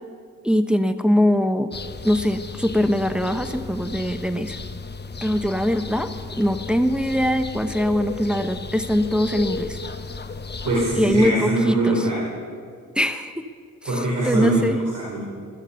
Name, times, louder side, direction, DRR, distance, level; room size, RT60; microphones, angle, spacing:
voice 1, 0.4-1.7 2.0-4.6 5.2-6.1 6.4-9.8 10.9-12.0 13.0-13.3 14.2-14.8, equal, 5° right, 7 dB, 1.0 m, -22 dB
sound 1, 1.7-11.3, left 3 dB, 30° left, 1.0 m, -34 dB
voice 2, 10.6-12.2 13.9-15.2, right 1 dB, 65° right, -5 dB, 3.8 m, -22 dB
14.5 x 13.5 x 5.5 m, 2.1 s
supercardioid pair, 50°, 33 cm